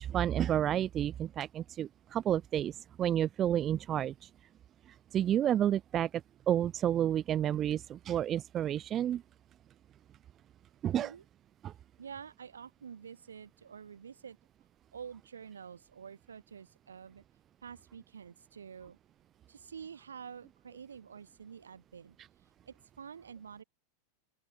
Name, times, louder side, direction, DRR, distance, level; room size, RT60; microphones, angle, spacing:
voice 1, 0.0-4.3 5.1-6.1 6.5-9.2 10.8-11.1 11.6-11.7, right 11 dB, 30° right, 0.7 m, -30 dB
voice 2, 12.0-14.4 14.9-17.2 17.6-19.0 19.5-22.2 22.4-23.6, right 7 dB, 70° right, 6.7 m, -48 dB
open air
figure-of-eight pair, 90°, 0 cm